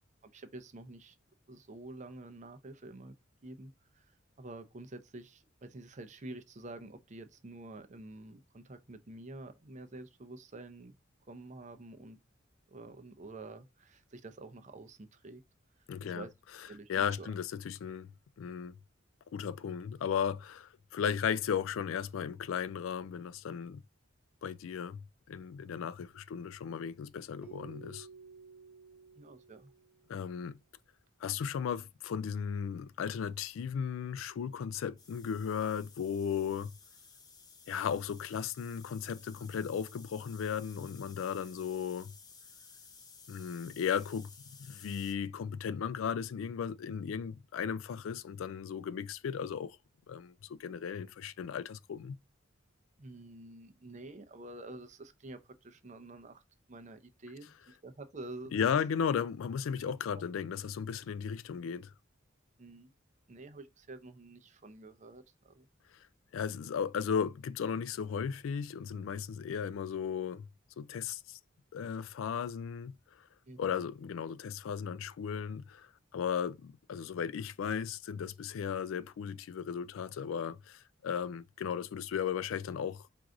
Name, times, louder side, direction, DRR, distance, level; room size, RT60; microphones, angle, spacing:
voice 1, 0.2-1.2 1.5-3.1 3.4-4.1 4.4-10.9 11.3-12.2 12.7-15.4 16.0-16.3 16.7-17.3 29.2-29.7 53.0-56.4 56.7-58.6 62.6-62.9 63.3-65.7 73.5-73.6, right 2 dB, 35° right, 0.6 m, -48 dB
voice 2, 15.9-16.3 16.9-18.1 18.4-18.7 19.3-23.8 24.4-28.1 30.1-30.6 31.2-36.7 37.7-42.1 43.3-44.3 44.6-49.8 50.1-52.2 58.5-61.9 66.3-70.5 70.8-71.4 71.7-73.3 73.6-83.1, left 7 dB, 85° left, 0.3 m, -36 dB
Keyboard (musical), 27.4-30.3, right 5 dB, 5° right, 0.9 m, -53 dB
sound 1, 35.0-45.1, left 5 dB, 20° left, 0.5 m, -56 dB
4.6 x 2.5 x 3.7 m
head